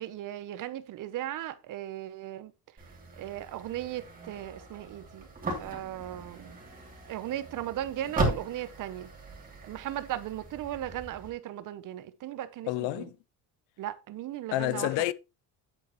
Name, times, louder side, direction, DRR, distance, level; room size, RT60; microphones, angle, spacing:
voice 1, 0.0-2.5 3.2-5.2 5.6-6.5 7.1-9.1 9.6-13.1 13.8-14.9, right 13 dB, 50° right, 0.8 m, -37 dB
sound 1, 2.8-11.3, right 2 dB, 20° right, 2.9 m, -37 dB
voice 2, 12.7-13.2 14.5-15.1, left 17 dB, 90° left, 0.7 m, -29 dB
9.1 x 8.5 x 3.0 m
cardioid pair, 160°, 42 cm